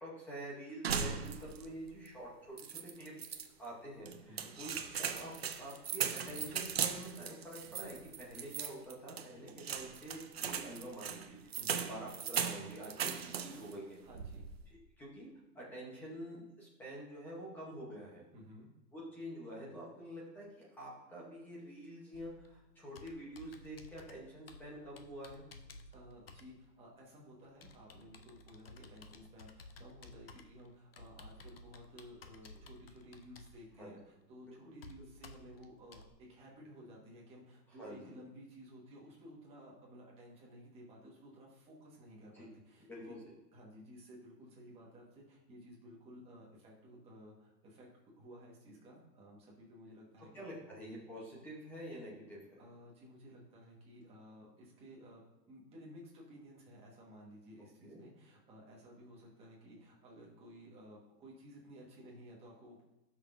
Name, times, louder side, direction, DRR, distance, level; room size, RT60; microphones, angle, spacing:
voice 1, 0.0-11.6 11.9-14.0 14.7-15.3 15.5-18.2 18.9-25.4 33.8-34.0 34.5-34.7 37.7-38.1 42.3-42.5 42.8-43.3 50.3-52.6 57.8-58.0, right 1 dB, 5° left, -4 dB, 0.8 m, -47 dB
sound 1, 0.8-1.8 2.1-2.2 2.6-3.5 4.1-13.7 14.1-14.6, right 7 dB, 40° right, 0.4 m, -39 dB
voice 2, 4.3-4.6 11.6-11.8 14.0-14.5 18.3-18.7 25.9-43.2 43.5-47.9 48.2-50.6 52.6-55.2 55.5-62.8, equal, 10° right, -4 dB, 1.4 m, -55 dB
Computer keyboard, 22.1-36.1, left 2 dB, 40° left, 0.4 m, -56 dB
15.5 x 6.1 x 2.6 m, 0.98 s
hypercardioid pair, 165°, 50 cm